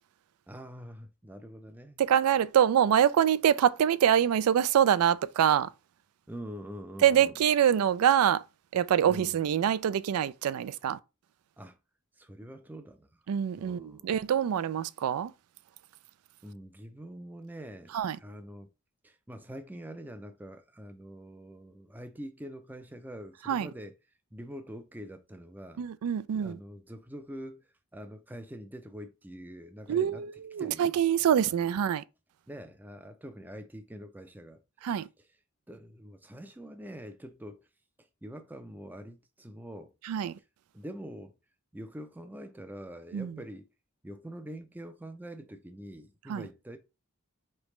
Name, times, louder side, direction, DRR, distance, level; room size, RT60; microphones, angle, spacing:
voice 1, 0.5-2.0 6.3-7.3 9.1-9.4 11.6-11.8 12.2-13.1 13.6-14.1 16.4-18.7 19.0-23.9 24.3-25.8 26.3-30.3 30.6-30.9 31.5-31.6 32.5-35.3 35.7-37.7 38.0-39.9 40.7-41.3 41.7-43.7 44.0-46.8, equal, 10° right, 0.4 m, -45 dB
voice 2, 2.1-5.7 7.0-8.4 8.7-11.0 13.3-15.3 17.9-18.2 23.5-23.7 25.8-26.6 29.9-32.0 34.8-35.1 40.1-40.4 43.1-43.3 46.3-46.4, right 9 dB, 85° right, 0.3 m, -25 dB
4.8 x 3.3 x 3.1 m
head